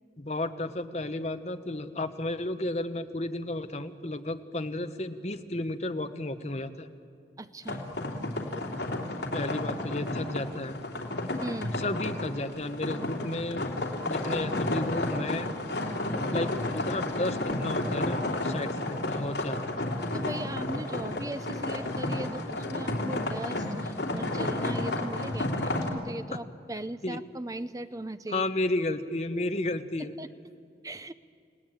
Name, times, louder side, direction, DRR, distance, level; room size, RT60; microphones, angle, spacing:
voice 1, 0.2-6.9 9.3-10.8 11.8-13.7 14.0-15.5 16.3-19.7 26.3-26.4 27.0-27.2 28.3-30.1, left 2 dB, 40° left, 8 dB, 1.0 m, -33 dB
voice 2, 7.4-7.8 11.4-11.8 20.1-28.4 30.0-30.3 30.8-31.1, right 1 dB, 20° right, 12 dB, 0.6 m, -38 dB
sound 1, 7.6-25.9, left 2 dB, 80° left, 3.1 m, -32 dB
29.5 x 18.0 x 9.0 m, 2.4 s
head